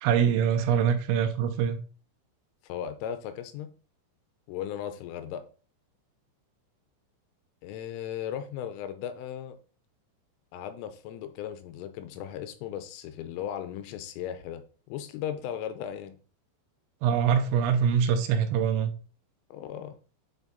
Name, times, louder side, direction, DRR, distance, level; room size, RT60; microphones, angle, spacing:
voice 1, 0.0-1.8 17.0-18.9, right 7 dB, 85° right, 3.5 m, -24 dB
voice 2, 2.6-3.7 4.5-5.4 7.6-9.6 10.5-14.6 14.9-16.2 19.5-20.0, left 10 dB, 85° left, 3.3 m, -36 dB
10.0 x 4.5 x 4.0 m
omnidirectional pair, 5.9 m